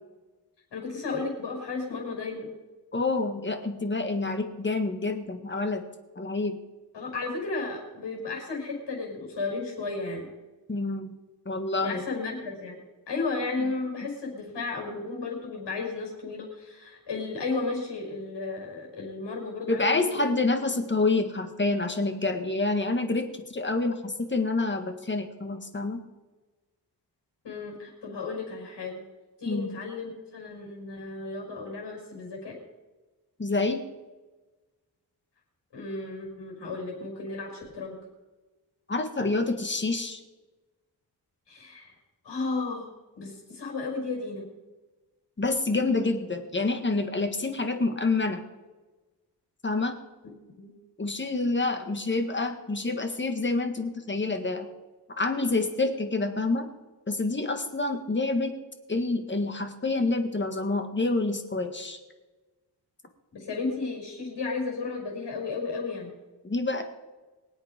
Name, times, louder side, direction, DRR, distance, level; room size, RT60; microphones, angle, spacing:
voice 1, 0.7-2.5 6.9-10.3 11.8-12.8 13.1-20.3 22.8-22.9 27.4-29.0 29.4-32.6 35.7-38.0 41.5-41.9 42.2-42.9 43.2-44.5 50.2-50.3 50.6-50.7 63.3-66.1, left 3 dB, 85° left, 0 dB, 5.9 m, -34 dB
voice 2, 2.9-5.8 6.1-6.6 10.7-11.1 11.4-12.0 13.6-13.7 19.7-26.0 29.5-29.8 33.4-33.8 38.9-40.2 45.4-48.4 49.6-50.0 51.0-54.7 55.1-56.7 57.1-58.5 58.9-62.0 66.4-66.8, left 3 dB, 25° left, 7 dB, 1.7 m, -27 dB
24.0 x 8.3 x 5.1 m, 1.2 s
wide cardioid pair, 105°, 41 cm